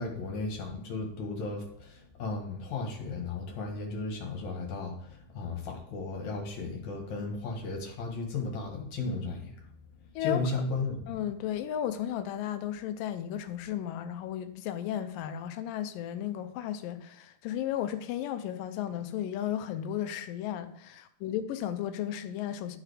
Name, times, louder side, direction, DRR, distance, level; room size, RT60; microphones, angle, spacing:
voice 1, 0.0-9.5 10.2-11.2, left 3 dB, 60° left, 2.7 m, -35 dB
voice 2, 11.1-22.8, left 10 dB, 85° left, 2.3 m, -34 dB
12.0 x 4.9 x 4.9 m
omnidirectional pair, 3.9 m